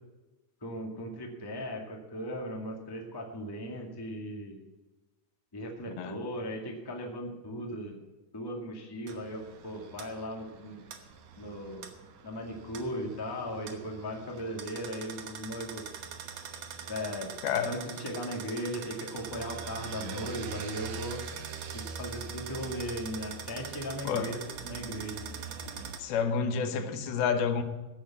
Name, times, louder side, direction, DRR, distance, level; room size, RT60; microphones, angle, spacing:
voice 1, 0.6-4.6 5.5-8.0 8.3-10.8 11.3-11.9 12.2-15.8 16.9-17.3 17.6-21.2 21.7-25.2, equal, 10° left, 0 dB, 1.0 m, -37 dB
sound 1, 9.1-26.0, right 7 dB, 65° right, 1.9 m, -42 dB
voice 2, 17.4-17.8 24.0-24.3 26.0-27.6, left 6 dB, 90° left, 8 dB, 3.0 m, -29 dB
16.0 x 6.8 x 7.4 m, 1.1 s
omnidirectional pair, 4.3 m